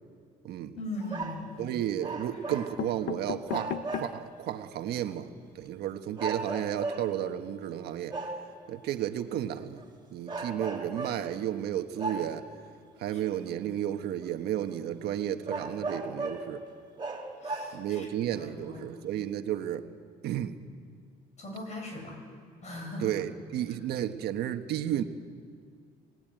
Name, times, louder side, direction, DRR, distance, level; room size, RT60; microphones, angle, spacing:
sound 1, 0.8-1.4 2.1-2.2 2.5-4.3 4.8-4.9 5.1-5.2 5.5-5.7, left 11 dB, 80° left, 0.9 m, -38 dB
voice 1, 0.8-1.5 13.1-13.2 17.4-18.8 21.4-22.2 22.6-23.1, left 1 dB, 45° left, 2 dB, 8.0 m, -39 dB
sound 2, 1.0-1.5 2.0-3.1 3.5-4.3 5.1-5.2 6.2-7.3 8.1-8.6 9.6-9.8 10.3-11.3 12.0-12.6 13.5-13.6 14.2-14.3 14.7-14.8 15.4-16.5 17.0-18.0 18.7-18.8, right 3 dB, 25° right, 3.4 m, -36 dB
voice 2, 1.6-5.3 5.6-8.1 8.7-9.8 10.1-12.4 13.0-16.6 17.7-19.8 20.2-20.5 23.0-25.0, right 11 dB, 75° right, 7 dB, 1.4 m, -32 dB
27.0 x 18.0 x 9.2 m, 2.1 s
cardioid pair, 110°, 17 cm